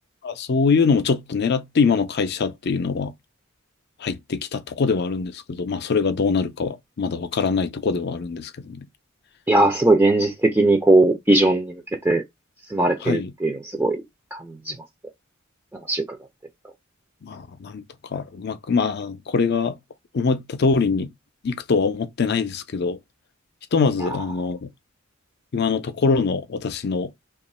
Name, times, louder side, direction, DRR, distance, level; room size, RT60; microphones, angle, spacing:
voice 1, 0.2-3.1 4.0-8.9 13.0-13.3 17.2-17.8 18.1-19.8 20.1-21.1 21.4-23.0 23.7-24.7 25.5-27.1, left 4 dB, 55° left, 0.5 m, -23 dB
voice 2, 9.5-12.2 12.7-14.0 14.7-14.8 15.9-16.0, right 2 dB, 10° right, 0.4 m, -19 dB
2.9 x 2.4 x 4.1 m
head